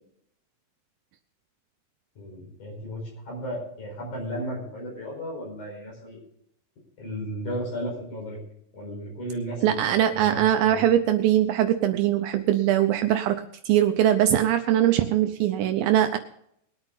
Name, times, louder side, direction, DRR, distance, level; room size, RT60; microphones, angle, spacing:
voice 1, 2.2-6.2 7.0-8.4 8.7-10.9, equal, 45° left, -2 dB, 6.0 m, -34 dB
voice 2, 9.6-16.2, right 11 dB, 85° right, 8 dB, 2.0 m, -22 dB
21.5 x 8.9 x 4.0 m, 0.71 s
omnidirectional pair, 5.0 m